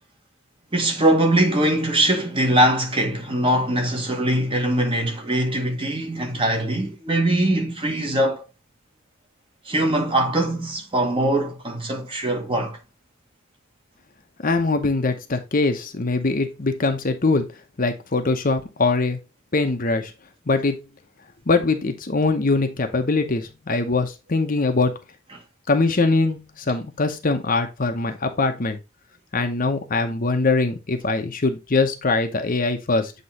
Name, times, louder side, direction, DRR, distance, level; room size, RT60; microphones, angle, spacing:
voice 1, 0.7-8.4 9.7-12.8 25.3-25.4, right 1 dB, 25° right, 1.1 m, -22 dB
voice 2, 14.4-17.5 17.8-19.2 19.5-20.1 20.5-20.8 21.5-24.9 25.7-28.8 29.3-33.1, left 3 dB, 40° left, 0.8 m, -22 dB
8.0 x 3.0 x 4.1 m
head